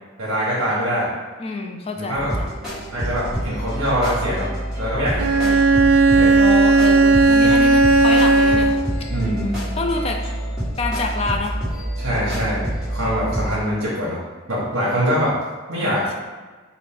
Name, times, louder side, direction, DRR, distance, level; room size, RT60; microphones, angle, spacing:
voice 1, 0.2-1.1 2.0-2.3 2.9-4.5 4.8-5.5 6.1-6.4 7.4-7.6 9.1-9.6 12.0-12.6 12.9-14.2 14.5-15.4 15.7-16.1, equal, 60° right, -6 dB, 1.0 m, -23 dB
voice 2, 1.4-2.5 6.4-8.8 9.8-10.2 10.8-11.6 15.8-16.2, left 3 dB, 30° left, 3 dB, 0.3 m, -27 dB
sound 1, 2.1-13.6, right 1 dB, 5° right, 1.4 m, -27 dB
Bowed string instrument, 5.2-9.0, right 3 dB, 80° right, 0.3 m, -15 dB
4.4 x 2.5 x 3.5 m, 1.3 s
head